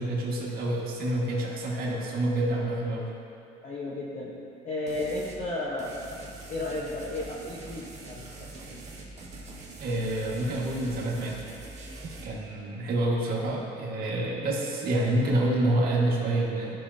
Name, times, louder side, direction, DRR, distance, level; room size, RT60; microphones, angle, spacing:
voice 1, 0.0-3.1 9.8-11.4 12.2-16.8, right 1 dB, 65° right, -3 dB, 1.8 m, -27 dB
voice 2, 3.6-4.3 4.6-8.8 14.4-14.7, left 2 dB, 45° left, -5 dB, 1.1 m, -34 dB
sound 1, 4.9-5.4 5.8-12.3, right 2 dB, 40° right, 1.7 m, -44 dB
13.5 x 6.1 x 2.8 m, 2.6 s
cardioid pair, 110°, 17 cm